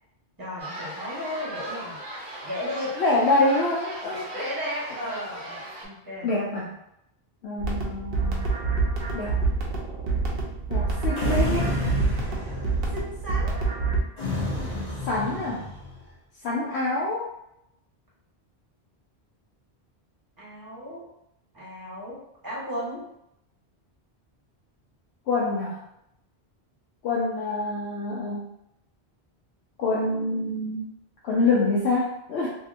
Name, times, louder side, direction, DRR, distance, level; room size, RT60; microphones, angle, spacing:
voice 1, 0.4-2.0 2.4-2.9 4.3-6.3 12.9-13.7 14.4-14.8 20.4-21.1 21.5-22.2 22.4-23.0, left 1 dB, 20° right, -8 dB, 1.2 m, -35 dB
sound 1, 0.6-5.9, right 1 dB, 40° right, 0.6 m, -37 dB
voice 2, 3.0-4.3 6.2-6.7 7.4-8.5 9.1-9.4 10.7-11.8 15.0-15.7 16.4-17.3 25.3-25.8 27.0-28.5 29.8-30.9 31.2-32.5, left 2 dB, 90° left, -5 dB, 0.9 m, -26 dB
sound 2, 7.6-14.0, right 4 dB, 65° right, 0.9 m, -26 dB
sound 3, 11.1-13.0 14.2-16.0, left 2 dB, 45° left, 0.7 m, -30 dB
2.7 x 2.7 x 2.5 m, 0.80 s
omnidirectional pair, 1.1 m